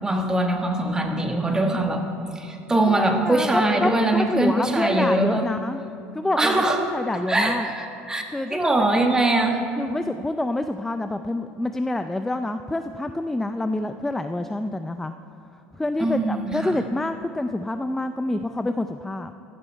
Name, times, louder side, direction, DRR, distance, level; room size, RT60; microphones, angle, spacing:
voice 1, 0.0-2.1 2.3-5.5 6.4-6.8 7.3-8.2 8.5-9.6 16.0-16.7, right 2 dB, 15° right, 3 dB, 1.4 m, -22 dB
voice 2, 2.9-5.8 6.1-7.7 8.3-8.9 9.8-15.1 15.7-19.3, left 2 dB, 5° left, 8 dB, 0.4 m, -27 dB
14.5 x 12.0 x 4.5 m, 2.6 s
supercardioid pair, 115°, 5 cm